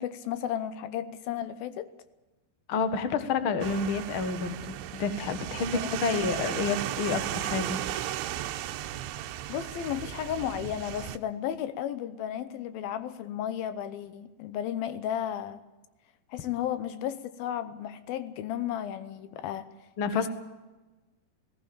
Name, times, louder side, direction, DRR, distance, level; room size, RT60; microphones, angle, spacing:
voice 1, 0.0-1.9 5.7-5.9 9.5-15.6 16.3-19.7 20.1-20.3, left 10 dB, 75° left, 13 dB, 2.6 m, -34 dB
voice 2, 2.7-7.8 20.0-20.3, left 4 dB, 50° left, 9 dB, 1.6 m, -29 dB
sound 1, 3.6-11.2, right 13 dB, 85° right, 2.8 m, -35 dB
18.0 x 17.5 x 8.7 m, 1.1 s
omnidirectional pair, 4.4 m